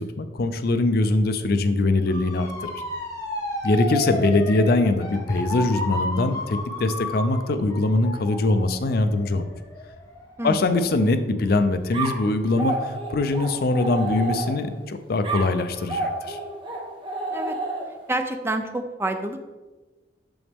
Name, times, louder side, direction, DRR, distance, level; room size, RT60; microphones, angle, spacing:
voice 1, 0.0-2.8 3.6-9.5 10.4-16.4, left 2 dB, 60° left, 9 dB, 0.5 m, -22 dB
Motor vehicle (road) / Siren, 2.1-11.0 11.4-11.8, left 2 dB, 20° left, 1.6 m, -32 dB
voice 2, 10.4-10.9 17.3-17.6 18.1-19.4, right 1 dB, 15° right, 7 dB, 0.4 m, -28 dB
sound 1, 11.9-14.8 15.2-18.1, right 2 dB, 30° right, 1.0 m, -30 dB
6.9 x 6.2 x 3.5 m, 1.2 s
head